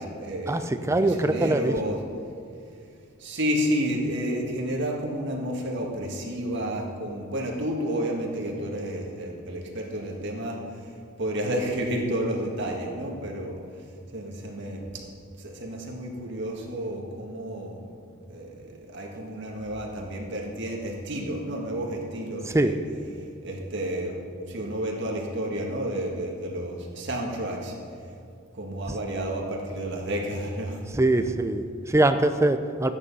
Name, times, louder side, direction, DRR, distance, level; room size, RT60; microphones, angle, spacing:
voice 1, 0.0-2.0 3.2-10.8 11.2-13.6 14.1-15.1 15.4-22.8 23.4-27.8 28.5-30.8 31.2-31.3, equal, 60° right, 0 dB, 1.9 m, -31 dB
voice 2, 0.9-1.7 22.5-22.7 30.9-32.9, right 2 dB, 15° right, 9 dB, 0.5 m, -22 dB
14.0 x 9.5 x 5.5 m, 2.4 s
head